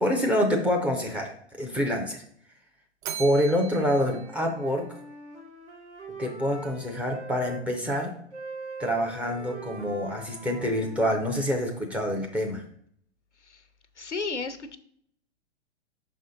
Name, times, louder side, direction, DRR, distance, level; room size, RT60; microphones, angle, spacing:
voice 1, 0.0-2.2 3.2-4.8 6.2-8.1 8.8-12.6, equal, 5° right, 1 dB, 0.4 m, -26 dB
Bell, 3.0-5.3, right 8 dB, 45° right, 0.9 m, -40 dB
Wind instrument woodwind instrument, 3.7-7.6 8.3-11.8, right 3 dB, 80° right, 2.0 m, -43 dB
voice 2, 14.0-14.8, left 4 dB, 90° left, 10 dB, 0.7 m, -33 dB
6.0 x 4.2 x 3.9 m, 0.63 s
figure-of-eight pair, 110°, 34 cm